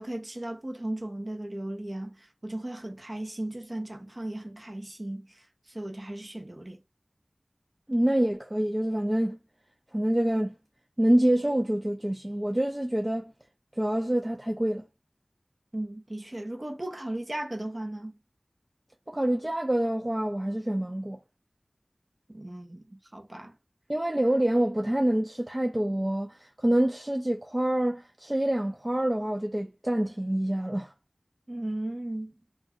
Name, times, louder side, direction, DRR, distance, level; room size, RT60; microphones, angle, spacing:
voice 1, 0.0-6.8 15.7-18.2 22.3-23.6 31.5-32.3, right 1 dB, 40° right, 0.7 m, -36 dB
voice 2, 7.9-9.4 9.9-10.5 11.0-13.3 13.8-14.8 19.1-21.2 23.9-30.9, right 1 dB, 25° right, 0.3 m, -26 dB
2.5 x 2.1 x 3.5 m
wide cardioid pair, 40°, 0 cm